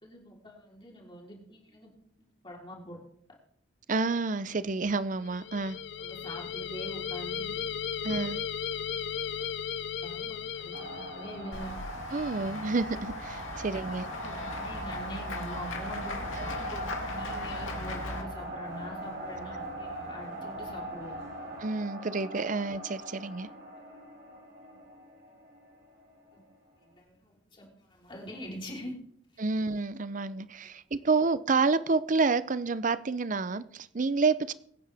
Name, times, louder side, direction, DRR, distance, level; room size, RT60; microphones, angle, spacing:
voice 1, 0.0-1.9 2.4-3.0 5.9-7.5 8.7-9.0 9.3-11.8 13.6-21.2 23.8-23.9 26.3-26.4 26.8-28.9 29.3-29.4 30.6-30.7, equal, 25° left, -2 dB, 3.8 m, -44 dB
voice 2, 3.9-5.8 8.0-8.4 12.1-14.1 21.6-23.5 29.4-34.5, right 4 dB, 40° right, 15 dB, 0.6 m, -29 dB
sound 1, 5.2-11.6, left 8 dB, 60° left, 0.6 m, -36 dB
sound 2, 10.7-26.5, right 1 dB, 60° right, 6.7 m, -41 dB
Run / Walk footsteps / Bell, 11.5-18.2, left 2 dB, 90° left, 2.7 m, -39 dB
23.5 x 9.5 x 3.5 m, 0.67 s
head